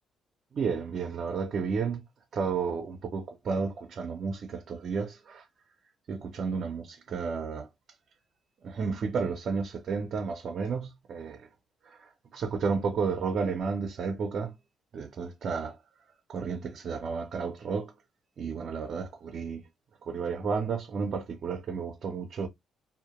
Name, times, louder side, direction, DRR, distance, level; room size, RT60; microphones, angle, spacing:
voice 1, 0.5-2.0 2.3-5.5 6.1-7.7 8.6-11.5 11.8-14.5 14.9-15.8 16.3-17.9 18.4-19.6 20.0-22.5, right 5 dB, 55° right, 0.5 m, -32 dB
2.1 x 2.1 x 2.9 m
cardioid pair, 90°, 0 cm